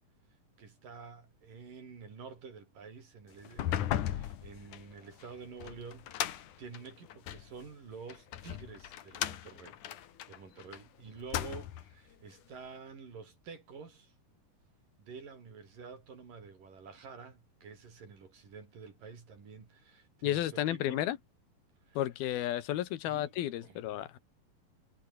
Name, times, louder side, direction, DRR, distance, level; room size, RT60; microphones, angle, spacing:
voice 1, 0.6-9.8 10.3-14.1 15.0-21.0 21.9-22.0 23.1-23.3 23.6-23.8, right 5 dB, 65° right, 6.5 m, -49 dB
sound 1, 3.4-7.5 8.1-10.8 11.2-11.9, left 11 dB, 65° left, 2.7 m, -37 dB
voice 2, 20.2-21.2 22.0-24.2, left 13 dB, 90° left, 3.4 m, -32 dB
omnidirectional pair, 4.2 m